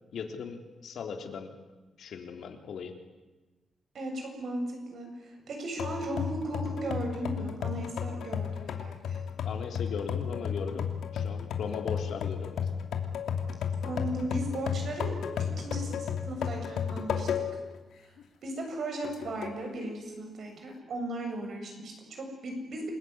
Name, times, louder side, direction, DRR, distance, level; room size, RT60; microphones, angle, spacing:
voice 1, 0.1-1.5 2.0-2.9 9.4-12.6, left 6 dB, 65° left, 5 dB, 3.5 m, -38 dB
voice 2, 3.9-9.2 13.8-17.4 18.0-18.1 18.4-22.9, right 1 dB, 55° right, 3 dB, 7.6 m, -36 dB
sound 1, 5.8-17.7 18.2-18.3 19.0-19.6, left 7 dB, 85° left, 2.9 m, -33 dB
28.5 x 20.5 x 9.9 m, 1.2 s
wide cardioid pair, 165°, 0 cm